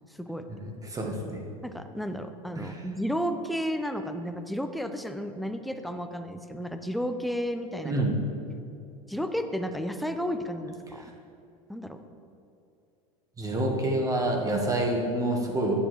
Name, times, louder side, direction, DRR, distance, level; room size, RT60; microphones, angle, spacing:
voice 1, 0.5-1.4 2.5-2.8 7.8-8.1 11.0-11.1 13.4-15.7, right 1 dB, 20° right, 1 dB, 1.3 m, -28 dB
voice 2, 1.6-7.9 9.1-11.1 11.7-12.0, equal, ahead, 7 dB, 0.4 m, -32 dB
9.8 x 6.8 x 3.1 m, 2.7 s
hypercardioid pair, 100°, 19 cm